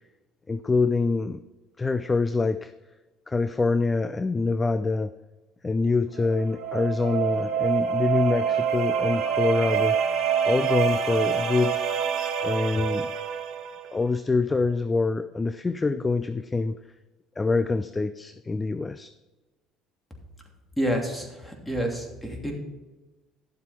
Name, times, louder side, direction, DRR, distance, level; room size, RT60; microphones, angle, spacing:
voice 1, 0.5-1.4 1.8-2.7 3.3-5.1 5.6-10.0 10.5-11.8 12.4-13.1 13.9-16.8 17.4-19.1, left 3 dB, 20° left, 13 dB, 0.4 m, -25 dB
sound 1, 6.2-13.9, right 7 dB, 60° right, 1.5 m, -26 dB
voice 2, 20.8-22.5, equal, 5° left, 1 dB, 2.8 m, -29 dB
12.0 x 7.5 x 4.4 m, 1.2 s
supercardioid pair, 80°, 0 cm